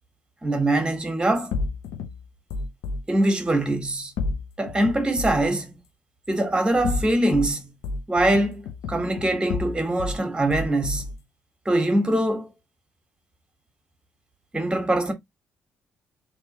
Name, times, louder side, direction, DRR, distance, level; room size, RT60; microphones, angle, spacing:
voice 1, 0.4-1.5 3.1-4.1 4.6-5.7 6.3-7.7 8.1-11.1 11.6-12.5 14.5-15.1, right 1 dB, 20° right, 1.5 m, -23 dB
sound 1, 1.5-3.0 4.2-5.5 6.7-7.5 7.8-10.2 10.5-11.2, left 3 dB, 85° left, 0.7 m, -31 dB
3.4 x 2.9 x 3.0 m
supercardioid pair, 70°, 5 cm